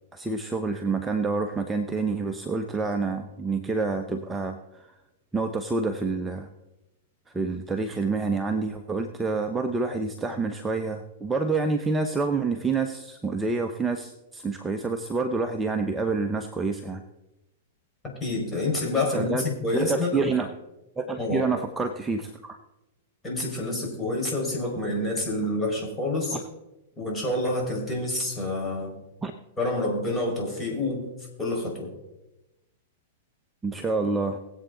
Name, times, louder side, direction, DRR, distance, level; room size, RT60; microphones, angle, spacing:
voice 1, 0.1-4.9 5.3-6.5 7.3-17.0 19.1-19.4 19.7-20.5 21.0-22.6 26.3-26.4 29.2-29.3 33.6-34.4, right 4 dB, 10° right, 5 dB, 0.9 m, -28 dB
voice 2, 18.2-20.3 21.2-21.5 23.2-26.4 27.0-28.9 29.6-31.0 31.4-31.9, left 2 dB, 15° left, -2 dB, 5.4 m, -28 dB
20.5 x 8.2 x 4.0 m, 0.99 s
hypercardioid pair, 105°, 0 cm